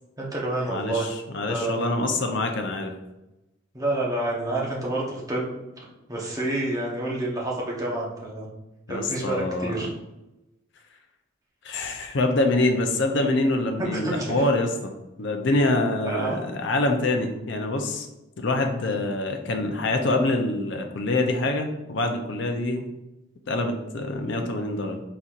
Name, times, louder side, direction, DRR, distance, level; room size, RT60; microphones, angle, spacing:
voice 1, 0.2-1.1 1.5-2.1 3.7-5.5 5.8-8.5 8.9-9.9 13.8-14.3 16.0-16.5 18.9-19.0, right 2 dB, 20° right, -4 dB, 0.9 m, -29 dB
voice 2, 0.7-2.9 8.9-9.7 11.6-18.1 18.4-22.9 23.5-25.0, left 2 dB, 65° left, 4 dB, 0.6 m, -25 dB
4.3 x 4.0 x 2.5 m, 0.96 s
head